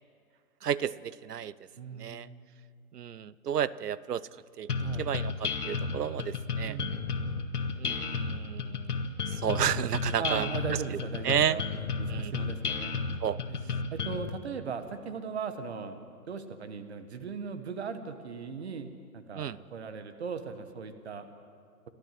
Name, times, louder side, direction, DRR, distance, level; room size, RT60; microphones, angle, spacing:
voice 1, 0.6-1.5 1.9-2.3 2.9-4.3 4.6-4.7 5.0-6.8 7.8-10.8 11.2-11.6 12.1-12.3 13.2-13.4 19.4-19.6, right 9 dB, 85° right, 19 dB, 0.9 m, -32 dB
voice 2, 1.8-2.3 4.8-5.1 6.7-7.2 10.2-13.0 13.5-13.6 13.9-16.0 16.3-18.9 19.1-21.3, right 6 dB, 45° right, 9 dB, 1.6 m, -38 dB
sound 1, 4.7-14.3, left 4 dB, 75° left, 2.1 m, -32 dB
29.5 x 13.0 x 7.7 m, 2.2 s
hypercardioid pair, 170°, 46 cm